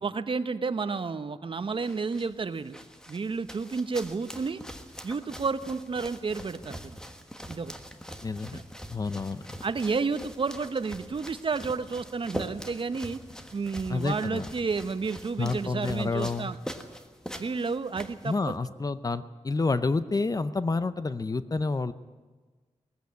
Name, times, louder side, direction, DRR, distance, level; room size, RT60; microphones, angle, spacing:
voice 1, 0.0-2.8 3.1-4.6 5.0-7.0 7.5-7.7 8.5-8.6 9.6-13.2 13.5-16.6 17.4-18.5, right 4 dB, 50° right, 12 dB, 0.9 m, -31 dB
sound 1, 1.6-18.6, equal, 5° left, 1.5 m, -43 dB
voice 2, 8.2-8.6 8.9-9.4 13.9-14.5 15.4-16.5 18.2-21.9, left 3 dB, 30° left, 13 dB, 0.6 m, -29 dB
19.0 x 15.0 x 9.4 m, 1.4 s
wide cardioid pair, 140°, 12 cm